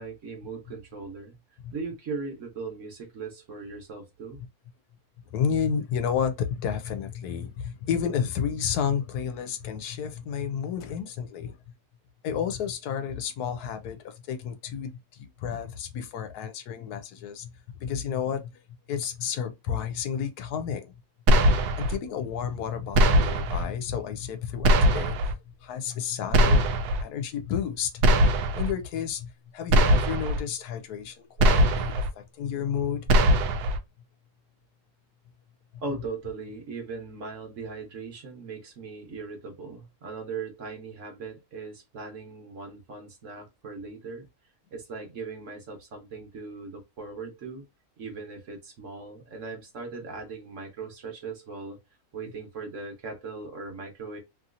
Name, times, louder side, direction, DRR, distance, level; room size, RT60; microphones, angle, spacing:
voice 1, 0.0-1.4 1.7-4.4 35.8-44.3 44.7-47.6 48.0-51.8 52.1-54.2, right 4 dB, 55° right, 1.3 m, -39 dB
voice 2, 5.3-11.6 12.2-17.5 17.8-18.5 18.9-20.9 21.8-28.0 28.5-33.1, left 7 dB, 85° left, 1.1 m, -31 dB
sound 1, 21.3-22.0 22.9-23.6 24.6-25.3 26.3-27.0 28.0-28.7 29.7-30.4 31.4-32.1 33.1-33.8, equal, 80° right, 1.1 m, -20 dB
3.0 x 2.7 x 2.4 m
omnidirectional pair, 1.7 m